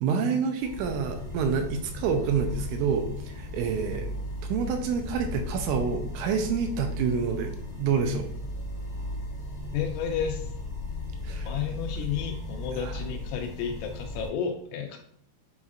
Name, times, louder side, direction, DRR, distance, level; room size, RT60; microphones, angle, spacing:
voice 1, 0.0-4.1 4.5-7.5 7.8-8.3 11.2-11.5 12.7-13.0, right 6 dB, 85° right, 5 dB, 2.9 m, -28 dB
sound 1, 0.6-14.3, left 1 dB, 30° left, 1.0 m, -36 dB
voice 2, 9.7-10.5 11.4-15.0, left 7 dB, 85° left, 4 dB, 2.7 m, -32 dB
9.4 x 4.2 x 2.5 m, 0.69 s
omnidirectional pair, 5.6 m